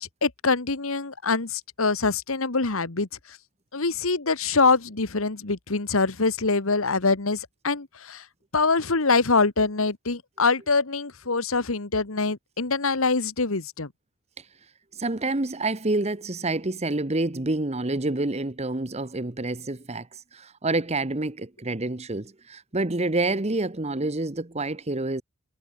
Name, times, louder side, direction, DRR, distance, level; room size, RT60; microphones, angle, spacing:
voice 1, 0.0-3.1 3.7-8.2 8.5-13.9, left 4 dB, 75° left, 1.6 m, -24 dB
voice 2, 14.9-25.2, right 2 dB, 30° right, 1.2 m, -28 dB
head